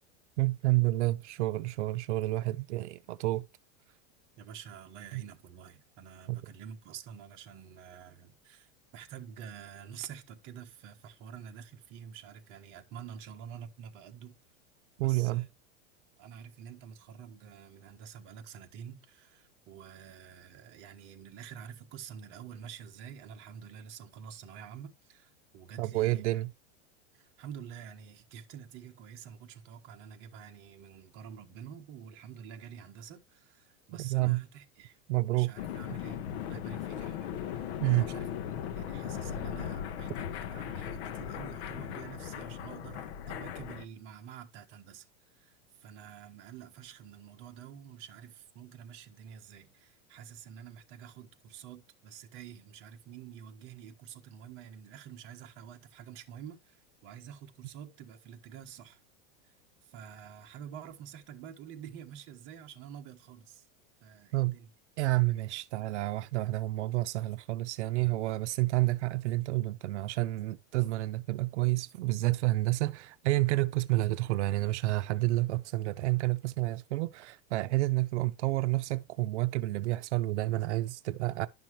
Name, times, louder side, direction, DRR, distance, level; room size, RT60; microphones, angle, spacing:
voice 1, 0.4-3.5 5.1-5.2 6.3-6.4 15.0-15.5 25.8-26.5 34.0-34.4 35.1-35.5 37.8-38.1 64.3-64.6 65.0-81.5, right 19 dB, 85° right, 0.7 m, -29 dB
voice 2, 4.4-14.3 15.0-15.5 16.2-26.2 27.1-35.0 35.3-36.2 36.5-38.3 38.6-45.0 45.3-59.0 59.4-59.5 59.8-63.6 64.0-64.7, right 8 dB, 35° right, 1.4 m, -48 dB
sound 1, 35.6-43.9, left 9 dB, 65° left, 1.1 m, -38 dB
11.0 x 5.9 x 3.1 m
supercardioid pair, 165°, 34 cm